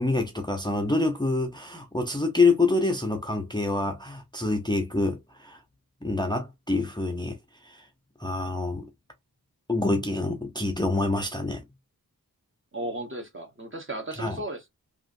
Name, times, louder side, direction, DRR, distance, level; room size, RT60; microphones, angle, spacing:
voice 1, 0.0-5.6 6.0-7.4 7.6-7.9 8.2-8.9 9.7-11.6 14.2-14.4, left 3 dB, 10° left, 0.6 m, -26 dB
voice 2, 12.7-14.7, right 1 dB, 30° right, 1.1 m, -35 dB
3.0 x 2.5 x 2.5 m
wide cardioid pair, 65°, 38 cm